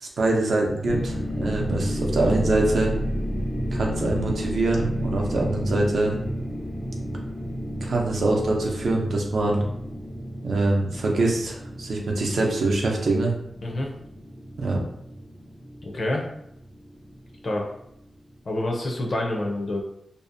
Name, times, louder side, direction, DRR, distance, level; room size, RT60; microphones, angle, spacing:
voice 1, 0.0-2.9 3.7-6.1 7.8-9.6 10.4-13.3 14.6-14.9, right 2 dB, 70° right, 0 dB, 0.5 m, -24 dB
sound 1, 0.8-18.0, equal, 10° right, 0.4 m, -32 dB
voice 2, 15.8-16.2 17.4-17.6 18.5-19.8, left 1 dB, 45° left, 0 dB, 0.5 m, -27 dB
2.6 x 2.0 x 2.5 m, 0.76 s
wide cardioid pair, 160°, 0 cm